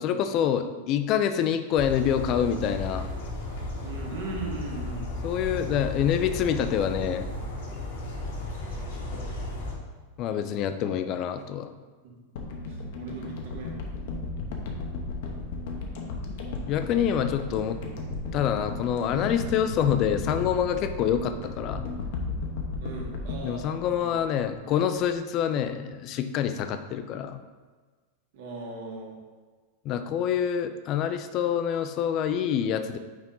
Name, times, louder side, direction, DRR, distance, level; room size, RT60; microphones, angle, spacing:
voice 1, 0.0-3.1 5.2-7.3 10.2-11.7 16.7-17.8 18.3-21.9 23.4-27.4 29.8-33.0, left 9 dB, 40° left, 9 dB, 0.4 m, -26 dB
sound 1, 1.7-9.7, left 1 dB, 85° left, 1.7 m, -34 dB
voice 2, 3.8-5.1 12.0-12.1 12.7-13.9 22.8-24.1 28.3-29.1, right 3 dB, 70° right, -2 dB, 1.7 m, -38 dB
sound 2, 12.4-24.7 25.0-25.1, left 3 dB, 65° left, 0.9 m, -35 dB
6.0 x 4.2 x 3.8 m, 1.4 s
supercardioid pair, 145°, 0 cm